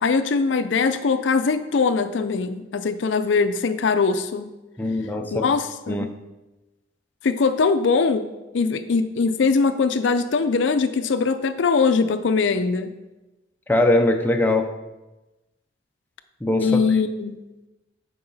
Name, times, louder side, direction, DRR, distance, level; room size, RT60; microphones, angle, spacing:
voice 1, 0.0-4.5 5.3-6.1 7.2-8.3 8.5-12.9 16.6-17.4, left 4 dB, 75° left, 11 dB, 0.4 m, -21 dB
voice 2, 4.8-5.5 5.9-6.1 13.7-14.7 16.4-16.7, left 1 dB, 10° left, 3 dB, 0.5 m, -21 dB
8.5 x 4.7 x 4.0 m, 1.0 s
head